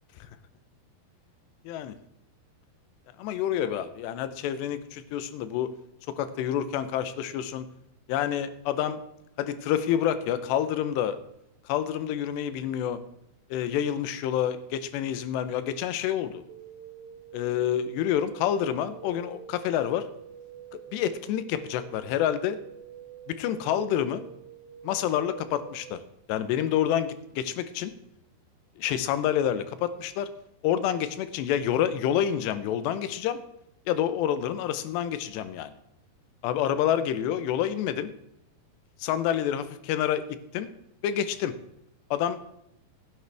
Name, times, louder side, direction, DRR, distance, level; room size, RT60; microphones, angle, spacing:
voice 1, 3.2-5.7 6.2-7.7 8.1-9.0 9.4-11.2 11.7-13.0 13.5-16.4 17.3-20.1 20.9-22.6 23.3-24.2 24.8-26.0 26.3-27.9 28.8-30.3 30.6-33.4 33.9-35.7 36.4-38.1 39.0-40.7 41.0-41.5 42.1-42.4, left 10 dB, 90° left, 12 dB, 3.0 m, -28 dB
sound 1, 16.5-26.1, right 10 dB, 80° right, 2.0 m, -47 dB
16.0 x 9.3 x 3.4 m, 0.81 s
omnidirectional pair, 4.8 m